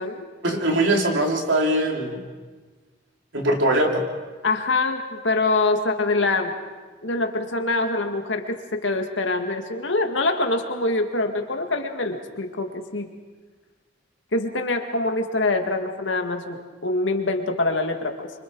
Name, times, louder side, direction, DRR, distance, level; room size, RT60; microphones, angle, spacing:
voice 1, 0.4-2.2 3.3-4.0, right 1 dB, 80° right, 1 dB, 3.3 m, -21 dB
voice 2, 4.4-6.5 7.0-13.1 14.3-18.3, left 2 dB, 80° left, 5 dB, 2.0 m, -24 dB
26.5 x 25.0 x 4.7 m, 1.4 s
head